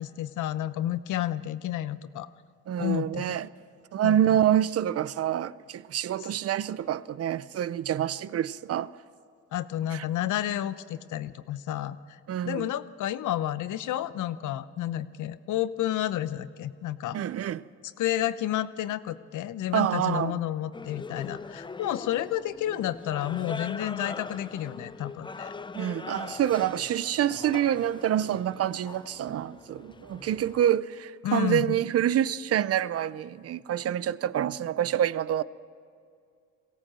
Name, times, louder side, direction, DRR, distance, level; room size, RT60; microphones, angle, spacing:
voice 1, 0.0-2.3 2.8-3.2 4.0-4.4 6.2-6.3 9.5-12.2 12.4-17.2 18.0-25.5 31.2-31.8, left 12 dB, 80° left, 0.8 m, -31 dB
voice 2, 2.7-3.5 3.9-8.9 9.9-10.0 12.3-12.7 17.1-17.6 19.7-20.4 25.7-35.4, right 10 dB, 55° right, 0.6 m, -27 dB
sound 1, 20.7-30.7, left 4 dB, 15° left, 0.5 m, -41 dB
22.5 x 17.0 x 7.6 m
cardioid pair, 90°, 30 cm